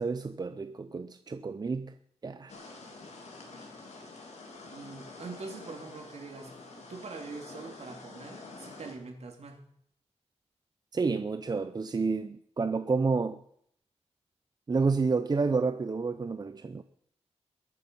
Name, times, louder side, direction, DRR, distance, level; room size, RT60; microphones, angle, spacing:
voice 1, 0.0-1.9 2.2-2.6 10.9-13.4 14.7-16.8, right 4 dB, 35° right, 0.6 m, -29 dB
sound 1, 2.5-8.9, left 3 dB, 75° left, 3.1 m, -47 dB
voice 2, 4.6-9.6, right 4 dB, 70° right, 3.0 m, -44 dB
21.0 x 8.8 x 5.5 m
wide cardioid pair, 130°, 12 cm